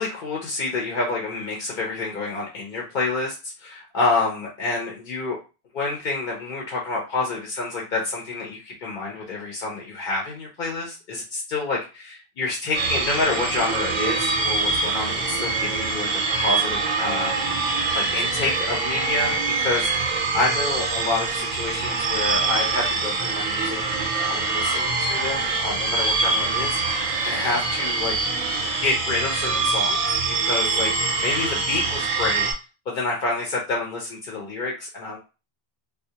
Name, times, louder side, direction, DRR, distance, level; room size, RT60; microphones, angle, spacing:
voice 1, 0.0-5.4 5.7-17.3 17.9-26.8 27.2-28.1 28.8-30.1 30.4-32.5 32.9-35.2, left 3 dB, 60° left, -1 dB, 0.7 m, -28 dB
sound 1, 12.7-32.5, right 3 dB, 55° right, 0.6 m, -24 dB
2.2 x 2.0 x 2.7 m, 0.30 s
omnidirectional pair, 1.0 m